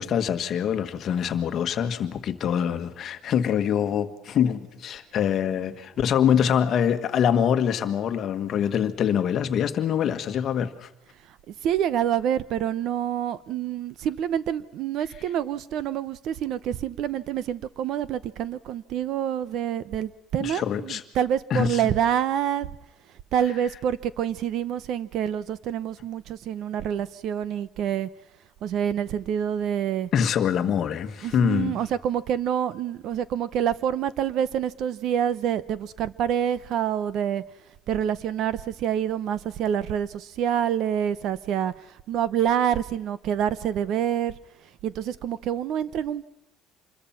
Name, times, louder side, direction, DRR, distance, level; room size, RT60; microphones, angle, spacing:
voice 1, 0.0-10.9 20.4-21.0 21.5-21.8 30.1-31.8, left 8 dB, 35° left, 9 dB, 1.5 m, -24 dB
voice 2, 11.6-22.7 23.3-28.1 28.6-30.1 31.2-37.4 37.9-41.7 42.1-44.3 44.8-46.3, right 9 dB, 45° right, 18 dB, 0.8 m, -27 dB
26.5 x 21.5 x 5.8 m, 0.90 s
cardioid pair, 180°, 0 cm